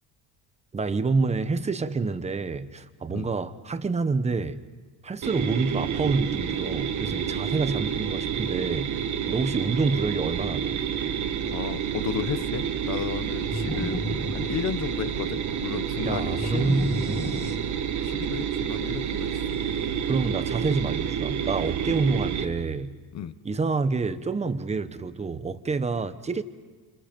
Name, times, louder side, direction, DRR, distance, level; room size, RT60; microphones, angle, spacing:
voice 1, 0.7-4.6 5.0-9.0 9.3-10.8 16.0-17.5 20.1-23.0 23.4-26.4, right 4 dB, 15° right, 0.9 m, -27 dB
sound 1, 5.2-22.5, right 8 dB, 45° right, 1.3 m, -29 dB
voice 2, 11.5-14.0 14.3-17.5 18.0-19.4 23.1-23.3, left 8 dB, 40° left, 1.1 m, -34 dB
sound 2, 13.5-15.2 16.4-18.0, left 1 dB, 5° left, 1.5 m, -33 dB
29.0 x 29.0 x 5.3 m
cardioid pair, 160°, 40 cm